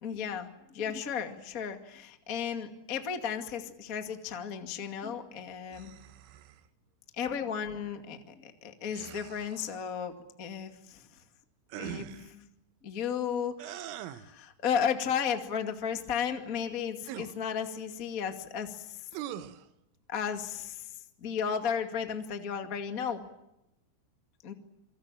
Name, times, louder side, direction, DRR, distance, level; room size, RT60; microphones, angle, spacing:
voice 1, 0.0-5.9 7.2-11.1 11.8-12.4 12.8-19.0 20.1-20.9 21.2-23.2 24.4-24.5, left 7 dB, 50° left, 6 dB, 1.0 m, -34 dB
sound 1, 5.7-6.7 8.9-9.8 11.7-12.3 13.6-14.3 17.0-17.4 19.1-19.6, right 12 dB, 80° right, 3.6 m, -42 dB
28.0 x 25.0 x 7.5 m, 0.87 s
omnidirectional pair, 5.7 m